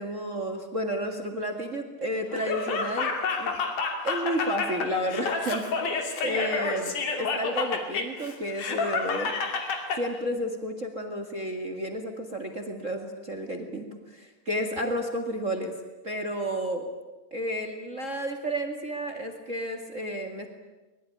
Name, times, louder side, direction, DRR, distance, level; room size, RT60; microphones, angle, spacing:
voice 1, 0.0-3.1 3.4-3.6 4.0-6.9 7.2-9.3 9.9-15.7 16.0-16.9 17.3-20.5, equal, 45° right, 7 dB, 1.0 m, -31 dB
Laughter, 2.3-10.0, left 4 dB, 50° left, 3.9 m, -29 dB
22.5 x 22.0 x 10.0 m, 1.2 s
omnidirectional pair, 5.0 m